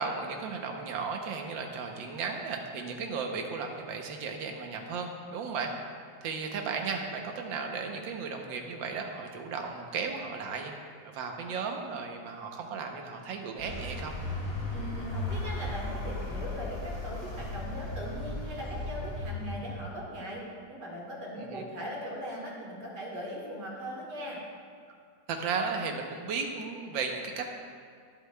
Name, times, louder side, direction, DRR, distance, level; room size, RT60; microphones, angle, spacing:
voice 1, 0.0-5.7 6.2-10.7 11.0-14.1 21.4-21.7 25.3-27.5, right 5 dB, 80° right, 3 dB, 1.6 m, -35 dB
Vehicle, 13.6-20.0, left 2 dB, 45° left, 2.1 m, -36 dB
voice 2, 14.7-20.4 20.7-24.4, equal, 65° right, -4 dB, 2.4 m, -39 dB
13.5 x 8.0 x 2.3 m, 2.3 s
omnidirectional pair, 2.0 m